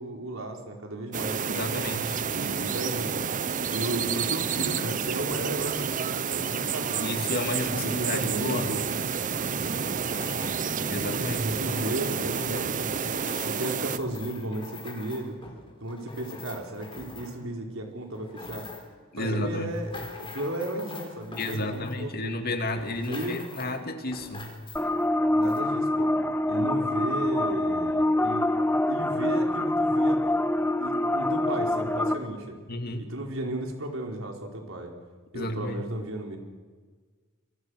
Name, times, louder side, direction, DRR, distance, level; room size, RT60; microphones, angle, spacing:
voice 1, 0.0-1.7 2.3-3.3 3.7-7.1 7.6-8.8 11.4-15.4 15.8-18.7 19.2-22.3 23.1-23.4 25.3-26.1 26.5-28.5 28.9-30.2 30.8-32.6 33.0-34.9 35.3-36.4, right 1 dB, 90° right, 2 dB, 4.5 m, -34 dB
sound 1, 1.1-14.0, right 6 dB, 40° right, 0.8 m, -30 dB
voice 2, 1.5-2.2 7.0-8.8 10.9-11.5 19.1-19.8 21.4-24.5 32.7-33.1 35.3-35.8, left 1 dB, 50° left, 6 dB, 2.5 m, -32 dB
sound 2, 9.3-10.7 11.2-17.6 18.0-19.0 19.5-22.3 22.7-23.8 24.1-25.1 25.4-25.6, left 3 dB, 25° left, 4.5 m, -44 dB
sound 3, 24.8-32.1, left 1 dB, 10° left, 1.0 m, -25 dB
27.5 x 23.0 x 6.5 m, 1.5 s
head